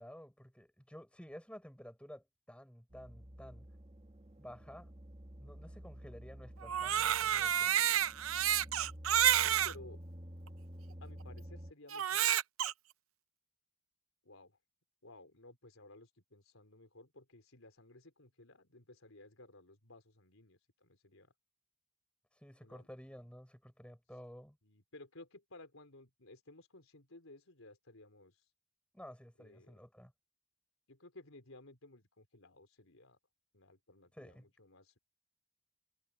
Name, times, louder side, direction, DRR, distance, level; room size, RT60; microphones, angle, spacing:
voice 1, 0.0-3.7 4.4-4.9 5.4-7.8 22.4-24.6 28.9-30.1 34.1-34.5, equal, 5° left, 6.7 m, -52 dB
sound 1, 2.9-11.7, equal, 30° right, 1.7 m, -51 dB
Crying sobbing, 6.6-9.7 10.5-10.6 11.9-12.7, right 10 dB, 90° right, 0.7 m, -30 dB
voice 2, 9.3-10.0 11.0-12.3 14.2-14.6 15.0-21.3 22.6-22.9 24.6-28.3 29.4-29.7 30.9-33.2 33.5-35.0, left 2 dB, 80° left, 4.1 m, -57 dB
head